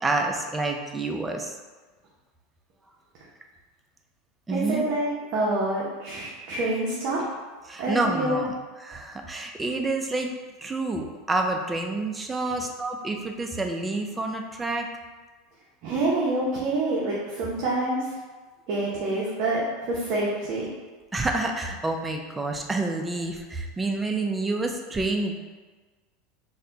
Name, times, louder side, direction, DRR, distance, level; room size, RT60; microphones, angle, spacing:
voice 1, 0.0-1.6 4.5-4.9 7.7-10.3 10.6-14.9 21.1-25.4, right 2 dB, 15° right, 3 dB, 0.4 m, -28 dB
voice 2, 4.5-7.2 7.8-8.4 15.8-18.1 18.7-20.7, right 2 dB, 55° right, -5 dB, 0.8 m, -27 dB
4.2 x 2.2 x 3.8 m, 1.3 s
supercardioid pair, 130°, 0 cm